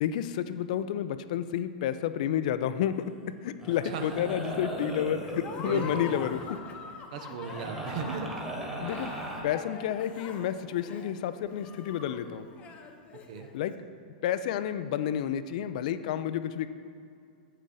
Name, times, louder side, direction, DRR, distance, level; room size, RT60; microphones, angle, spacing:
voice 1, 0.0-3.1 3.4-6.6 8.8-12.5 13.5-13.7 14.2-16.7, left 10 dB, 60° left, 12 dB, 0.4 m, -30 dB
sound 1, 2.9-3.2 3.6-6.5 7.4-9.4, right 1 dB, 10° right, 1.6 m, -38 dB
Laughter, 5.4-13.7, left 5 dB, 30° left, 0.8 m, -44 dB
voice 2, 5.7-6.2 7.1-8.4 13.1-13.5, right 6 dB, 60° right, 6 dB, 0.7 m, -37 dB
8.0 x 6.5 x 3.8 m, 2.5 s
hypercardioid pair, 105°, 4 cm